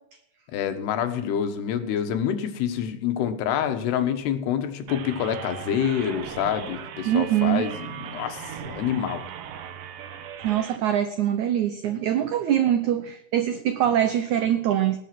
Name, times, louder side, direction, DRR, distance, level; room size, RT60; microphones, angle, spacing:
voice 1, 0.5-9.2, left 9 dB, 85° left, 8 dB, 3.4 m, -27 dB
sound 1, 2.9-8.8, right 5 dB, 5° right, 5.5 m, -50 dB
sound 2, 4.9-10.8, right 8 dB, 65° right, 2.5 m, -38 dB
voice 2, 7.0-7.7 10.4-15.0, right 11 dB, 85° right, 9 dB, 1.7 m, -23 dB
19.0 x 7.2 x 6.0 m, 0.74 s
omnidirectional pair, 4.6 m